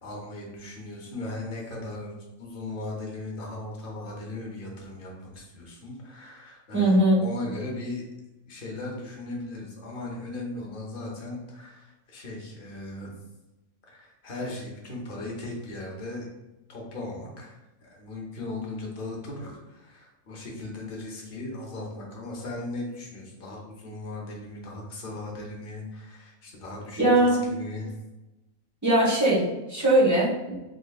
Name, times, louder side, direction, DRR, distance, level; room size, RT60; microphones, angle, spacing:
voice 1, 0.0-2.1 2.4-8.0 8.5-13.1 13.8-16.3 16.7-27.9, left 2 dB, 45° left, -1 dB, 0.9 m, -37 dB
voice 2, 6.7-7.2 27.0-27.4 28.8-30.5, right 1 dB, 15° right, -6 dB, 0.8 m, -20 dB
3.7 x 3.0 x 2.4 m, 1.0 s
omnidirectional pair, 1.4 m